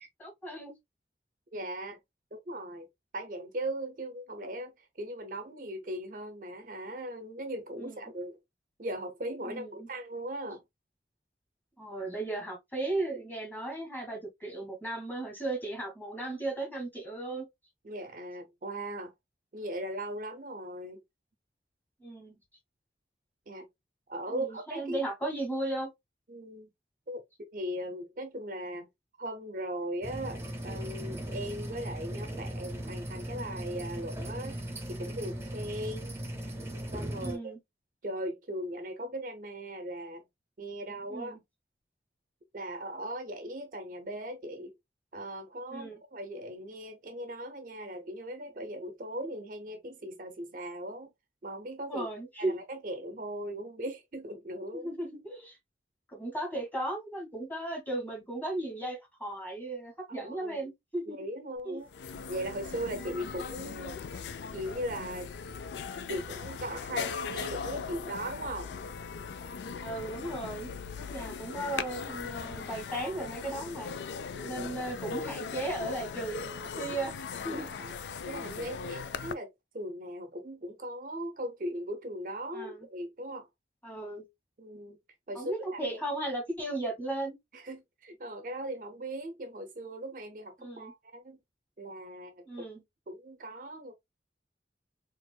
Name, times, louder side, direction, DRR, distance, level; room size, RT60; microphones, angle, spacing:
voice 1, 0.2-0.7 7.8-8.1 9.5-9.9 11.8-17.4 22.0-22.4 24.3-25.9 37.2-37.6 41.1-41.4 45.7-46.0 51.9-52.6 54.7-55.6 56.1-61.2 61.6-61.8 62.9-63.3 69.8-70.7 70.9-73.9 74.4-77.1 77.4-77.7 82.5-82.9 83.8-84.2 85.3-87.4 90.6-90.9 92.4-92.8, right 2 dB, 10° left, 1.4 m, -36 dB
voice 2, 1.5-2.0 2.3-2.9 3.1-8.4 8.8-10.6 17.8-19.1 19.5-21.0 23.5-23.7 24.1-25.0 26.3-26.7 27.1-28.9 29.2-34.6 34.9-36.2 36.9-37.5 38.0-40.2 40.6-41.4 42.5-44.7 45.1-51.1 51.4-52.1 52.4-54.9 60.1-60.7 61.1-61.9 62.3-64.2 64.5-65.3 66.1-68.7 74.3-74.7 77.4-77.9 78.2-79.5 79.7-83.5 84.6-85.0 85.3-86.0 87.5-91.4 91.8-92.4 93.1-93.9, right 1 dB, 50° right, 0.5 m, -39 dB
sound 1, 30.0-37.3, right 1 dB, 15° right, 0.7 m, -38 dB
sound 2, 61.6-61.7 61.9-79.3, left 6 dB, 80° left, 0.4 m, -39 dB
4.3 x 2.4 x 2.2 m
head